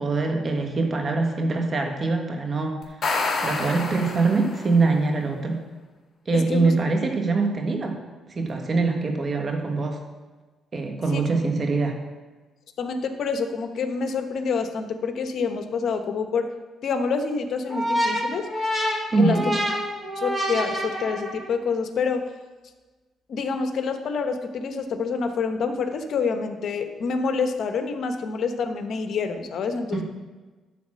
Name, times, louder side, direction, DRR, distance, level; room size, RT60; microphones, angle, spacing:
voice 1, 0.0-2.8 3.4-5.6 6.2-8.0 8.3-10.0 10.7-12.0 19.1-19.5 29.9-30.0, right 3 dB, 40° right, 3 dB, 1.6 m, -23 dB
sound 1, 2.8-4.8, left 3 dB, 45° left, 2.2 m, -28 dB
voice 2, 6.3-6.8 11.1-11.2 12.8-16.5 16.8-18.5 19.2-19.6 20.2-22.3 23.3-30.0, left 5 dB, 65° left, 7 dB, 1.0 m, -27 dB
sound 2, 17.7-21.6, equal, 20° right, 2.5 m, -27 dB
12.0 x 4.1 x 7.4 m, 1.3 s
cardioid pair, 90°, 0 cm